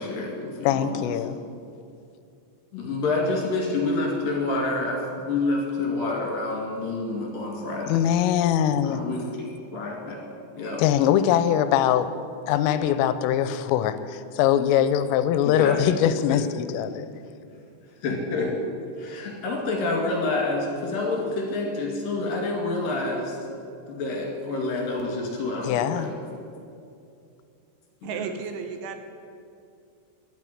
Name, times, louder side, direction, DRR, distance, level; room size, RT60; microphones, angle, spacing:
voice 1, 0.0-1.1 2.7-8.0 8.8-9.2 9.7-10.2 10.6-10.8 15.4-15.8 16.2-16.4 18.0-18.5 19.0-23.4 23.9-26.1 28.0-28.3, left 2 dB, 50° left, -1 dB, 3.4 m, -28 dB
voice 2, 0.6-1.4 7.9-9.0 10.8-12.1 12.5-17.1 25.6-26.1, left 10 dB, 85° left, 12 dB, 3.2 m, -22 dB
voice 3, 28.0-29.0, right 6 dB, 80° right, 7 dB, 3.1 m, -33 dB
11.5 x 9.2 x 10.0 m, 2.5 s
omnidirectional pair, 5.8 m